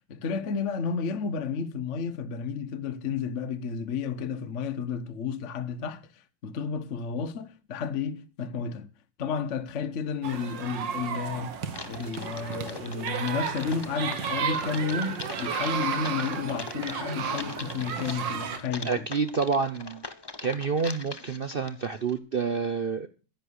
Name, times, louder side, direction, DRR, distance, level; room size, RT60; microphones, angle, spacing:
voice 1, 0.1-8.9 9.2-11.5 11.8-19.0, left 5 dB, 50° left, 1.1 m, -32 dB
sound 1, 10.2-18.6, right 7 dB, 75° right, 2.0 m, -33 dB
Typing, 11.7-22.2, left 3 dB, 30° left, 0.4 m, -42 dB
voice 2, 18.8-20.0 20.4-23.1, right 5 dB, 60° right, 0.5 m, -28 dB
10.5 x 10.5 x 6.4 m
omnidirectional pair, 2.0 m